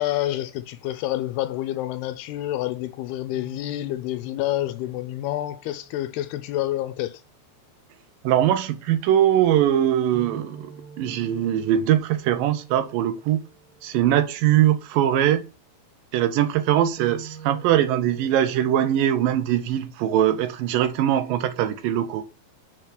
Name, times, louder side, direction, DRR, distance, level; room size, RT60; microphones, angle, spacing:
voice 1, 0.0-7.2, left 14 dB, 80° left, 2.4 m, -28 dB
sound 1, 3.3-7.5 10.1-14.3 17.0-19.0, right 5 dB, 5° left, 1.8 m, -46 dB
voice 2, 8.2-10.7 11.0-13.4 13.8-15.5 16.1-22.3, right 11 dB, 80° right, 2.1 m, -21 dB
8.2 x 4.6 x 6.0 m
omnidirectional pair, 4.8 m